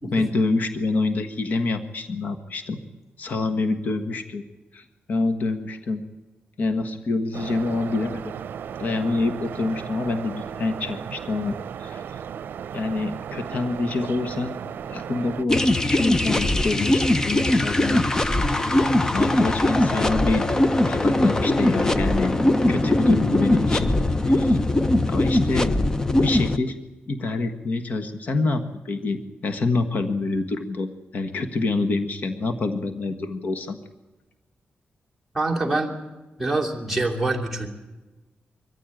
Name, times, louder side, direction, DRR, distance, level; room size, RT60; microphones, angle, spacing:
voice 1, 0.0-2.8 3.2-4.4 4.7-6.0 6.6-8.3 8.8-12.0 12.7-14.6 14.9-18.1 18.6-20.5 20.9-22.3 22.7-23.9 24.2-24.6 25.1-25.7 26.2-26.8 27.1-30.9 31.1-33.8, left 3 dB, 50° left, 7 dB, 1.4 m, -26 dB
sound 1, 7.3-15.5, right 8 dB, 75° right, 0.6 m, -35 dB
sound 2, 15.5-26.6, left 1 dB, 15° left, 0.7 m, -21 dB
voice 2, 35.3-35.9 36.4-37.7, right 2 dB, ahead, -2 dB, 2.8 m, -25 dB
23.0 x 15.0 x 9.1 m, 1.1 s
wide cardioid pair, 165°, 3 cm